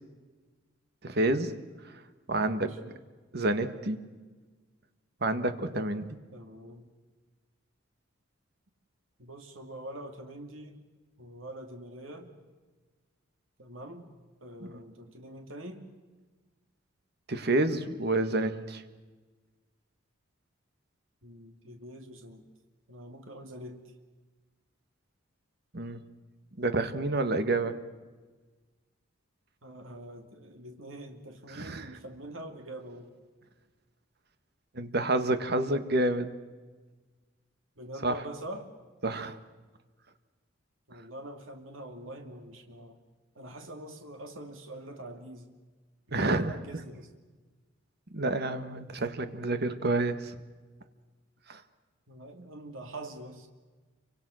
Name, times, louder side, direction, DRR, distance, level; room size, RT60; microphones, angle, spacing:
voice 1, 1.0-1.5 2.3-2.7 3.3-4.0 5.2-6.0 14.6-14.7 17.3-18.8 25.7-26.0 26.6-27.7 31.5-31.9 34.7-36.3 38.0-38.1 39.0-39.4 46.1-46.6 48.1-50.4 51.5-51.6, right 2 dB, 50° right, 9 dB, 1.7 m, -28 dB
voice 2, 2.4-2.9 6.3-6.9 9.2-10.8 11.2-12.3 13.6-14.1 14.4-15.9 21.2-22.4 22.9-23.9 29.6-33.2 37.8-38.7 40.9-43.0 43.4-45.5 46.1-47.1 52.1-53.5, right 1 dB, 75° right, 4 dB, 2.5 m, -44 dB
28.5 x 25.0 x 6.4 m, 1.3 s
head